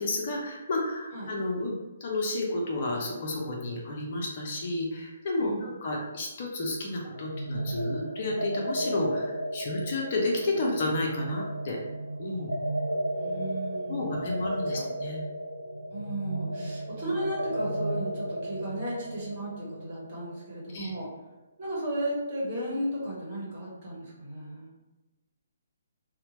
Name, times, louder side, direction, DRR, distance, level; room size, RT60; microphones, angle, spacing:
voice 1, 0.0-1.7 2.0-11.8 12.2-12.5 13.9-15.2 16.5-16.7 20.7-20.9, left 2 dB, 40° left, -1 dB, 0.5 m, -31 dB
voice 2, 5.4-5.7 13.2-14.1 14.7-14.8 15.9-21.1 21.6-24.7, right 1 dB, 35° right, -6 dB, 1.1 m, -35 dB
sound 1, 7.2-20.7, right 1 dB, 85° right, 0.3 m, -34 dB
2.8 x 2.1 x 2.8 m, 1.1 s
figure-of-eight pair, 135°, 0 cm